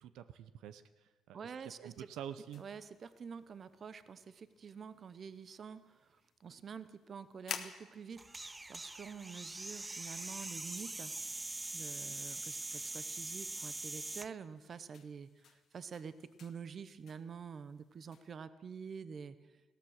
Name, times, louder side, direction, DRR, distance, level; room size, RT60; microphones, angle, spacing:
voice 1, 0.0-1.5 1.8-2.6, right 10 dB, 85° right, 12 dB, 0.6 m, -47 dB
voice 2, 1.3-2.1 2.6-8.2 8.7-11.1 11.7-19.4, right 6 dB, 45° right, 14 dB, 0.7 m, -48 dB
sound 1, 1.9-18.4, left 8 dB, 65° left, 1.3 m, -55 dB
sound 2, 8.2-14.3, right 2 dB, 15° right, 0.4 m, -43 dB
16.0 x 13.5 x 6.5 m, 1.3 s
cardioid pair, 100°, 0 cm